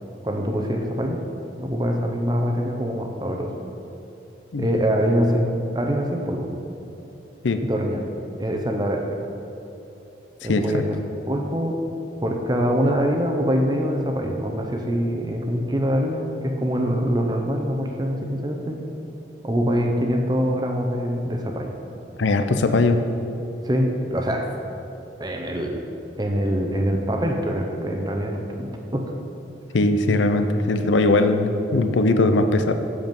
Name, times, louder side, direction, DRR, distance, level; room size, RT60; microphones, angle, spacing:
voice 1, 0.2-1.2 1.6-3.5 4.6-6.5 7.6-8.0 8.4-9.2 10.4-11.0 11.3-11.8 12.2-18.8 19.4-21.7 23.6-24.5 25.2-25.9 26.2-29.1 30.1-30.4, equal, 20° right, 2 dB, 0.7 m, -24 dB
voice 2, 10.5-10.8 22.2-23.1 29.7-32.7, left 2 dB, 90° left, 8 dB, 0.6 m, -20 dB
8.0 x 6.9 x 5.3 m, 2.8 s
head